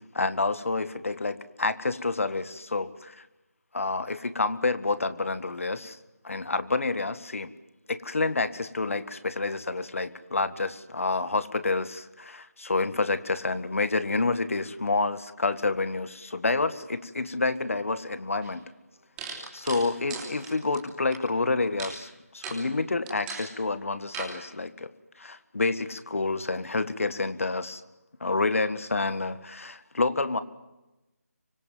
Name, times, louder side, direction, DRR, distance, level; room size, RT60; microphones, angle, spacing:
voice 1, 0.1-3.3 3.7-6.0 6.2-7.5 7.9-18.6 19.5-24.9 25.2-27.8 28.2-30.4, left 3 dB, 60° left, 13 dB, 1.7 m, -28 dB
sound 1, 18.4-18.5 19.2-21.2 21.8-22.0 22.4-22.6 23.1-23.5 24.1-24.3, right 4 dB, 10° right, 3.2 m, -37 dB
25.0 x 23.5 x 7.7 m, 1.0 s
figure-of-eight pair, 170°, 9 cm